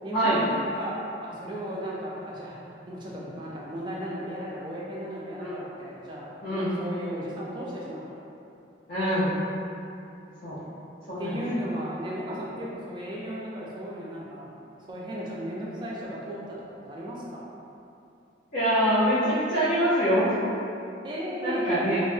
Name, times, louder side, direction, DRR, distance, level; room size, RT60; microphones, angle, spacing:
voice 1, 0.0-0.9 1.2-2.6 2.9-8.1 11.2-14.5 14.9-17.5 21.0-22.0, equal, 25° right, -5 dB, 0.3 m, -35 dB
voice 2, 6.4-6.7 8.9-9.3 10.4-10.6 11.1-11.4 18.5-20.2 21.4-22.0, equal, 50° left, -13 dB, 0.5 m, -24 dB
2.0 x 2.0 x 3.1 m, 2.7 s
head